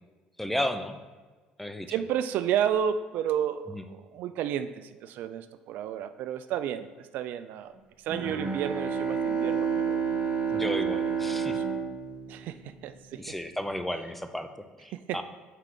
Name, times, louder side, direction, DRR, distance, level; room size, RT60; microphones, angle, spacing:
voice 1, 0.4-1.0 1.6-1.9 10.5-11.6 13.1-14.5 14.8-15.2, left 1 dB, 5° left, 8 dB, 0.5 m, -33 dB
voice 2, 1.9-7.7 8.0-10.0 10.5-10.6 10.9-11.6 12.3-13.4 14.9-15.2, right 9 dB, 70° right, 11 dB, 0.3 m, -32 dB
Bowed string instrument, 8.1-13.0, right 6 dB, 40° right, 1.2 m, -29 dB
5.7 x 4.5 x 3.8 m, 1.4 s
supercardioid pair, 80°, 3 cm